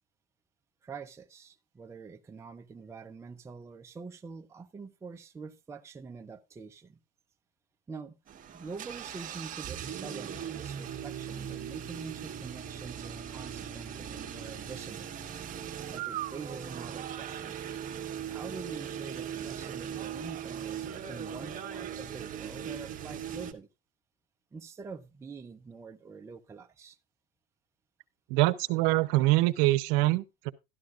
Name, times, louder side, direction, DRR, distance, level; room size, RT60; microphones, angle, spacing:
voice 1, 0.8-7.0 7.9-8.2 8.5-15.1 15.9-17.6 18.3-23.7 24.5-27.0, right 4 dB, 10° right, 0.6 m, -45 dB
sound 1, 8.3-23.5, right 9 dB, 25° right, 1.3 m, -39 dB
voice 2, 28.3-30.5, right 19 dB, 65° right, 0.8 m, -24 dB
12.5 x 11.0 x 2.5 m
supercardioid pair, 140°, 30 cm